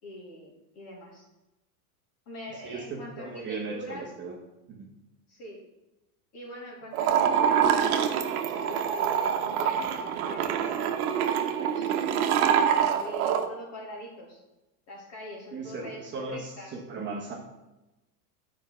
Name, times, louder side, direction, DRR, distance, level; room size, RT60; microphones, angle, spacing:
voice 1, 0.0-1.3 2.3-4.1 5.3-5.6 6.3-11.9 12.7-14.4 14.9-16.8, equal, 35° left, -2 dB, 2.8 m, -43 dB
voice 2, 2.6-4.4 4.7-4.9 15.5-17.3, right 3 dB, 25° right, -2 dB, 1.2 m, -37 dB
sound 1, 6.9-13.5, right 8 dB, 70° right, 1.0 m, -25 dB
9.1 x 4.7 x 6.0 m, 1.0 s
supercardioid pair, 155°, 44 cm